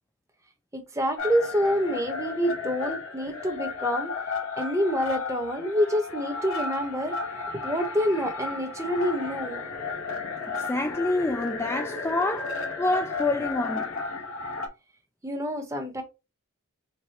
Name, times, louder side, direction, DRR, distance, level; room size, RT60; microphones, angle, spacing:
voice 1, 0.7-4.1 4.6-7.1 7.6-9.6 15.2-16.0, equal, 15° right, 1.0 m, -27 dB
jet fighter, 1.2-14.7, left 4 dB, 65° left, 1.3 m, -33 dB
voice 2, 10.5-13.9, left 2 dB, 10° left, 0.3 m, -27 dB
4.7 x 2.2 x 4.2 m
head